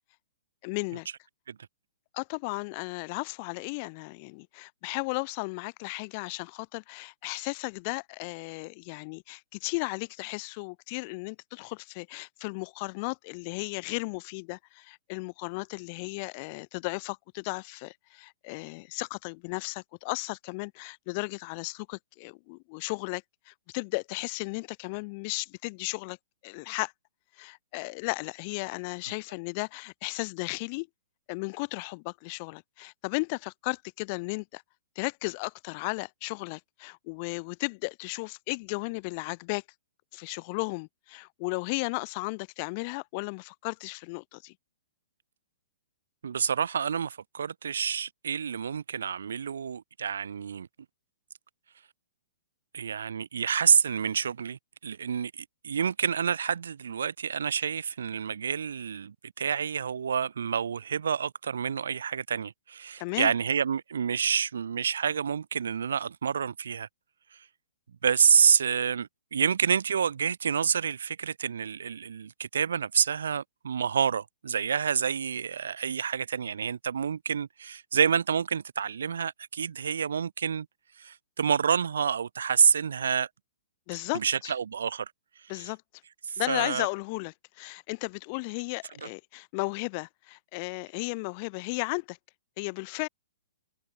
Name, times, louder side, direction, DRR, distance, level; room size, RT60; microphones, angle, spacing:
voice 1, 0.6-1.1 2.1-26.2 26.4-26.9 27.4-30.9 31.3-34.6 35.0-39.6 40.1-44.5 63.0-63.3 83.9-84.5 85.5-85.8 86.4-92.2 92.6-93.1, left 30 dB, 35° left, 5.3 m, -35 dB
voice 2, 46.2-50.7 52.7-66.9 67.3-67.5 68.0-80.7 81.0-83.3 84.1-85.1 85.4-85.6 86.2-86.9 89.0-89.1, right 7 dB, 65° right, 1.2 m, -28 dB
figure-of-eight pair, 115°, 0 cm